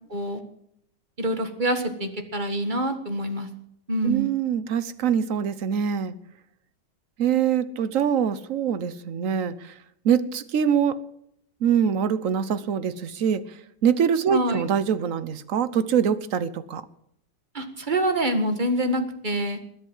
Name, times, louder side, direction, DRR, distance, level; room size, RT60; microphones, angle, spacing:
voice 1, 0.1-0.4 1.2-3.5 3.9-4.3 14.3-14.6 17.5-19.6, right 1 dB, 30° right, 7 dB, 1.8 m, -26 dB
voice 2, 4.0-6.1 7.2-9.7 10.0-11.0 11.6-13.4 13.8-16.8, right 8 dB, 55° right, 15 dB, 1.2 m, -24 dB
20.5 x 8.2 x 7.5 m, 0.72 s
omnidirectional pair, 1.8 m